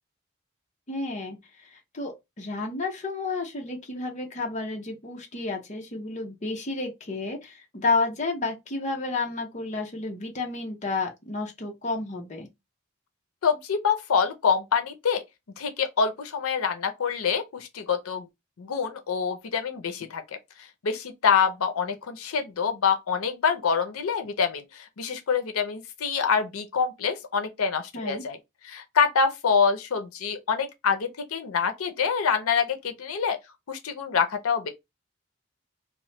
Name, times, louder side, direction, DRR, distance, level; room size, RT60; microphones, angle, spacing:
voice 1, 0.9-12.5 27.9-28.2, left 3 dB, 35° left, 0.6 m, -31 dB
voice 2, 13.4-15.2 15.6-18.3 18.6-20.2 20.8-28.4 28.6-33.4 33.7-34.7, left 6 dB, 85° left, 0.5 m, -26 dB
3.0 x 2.1 x 3.0 m
head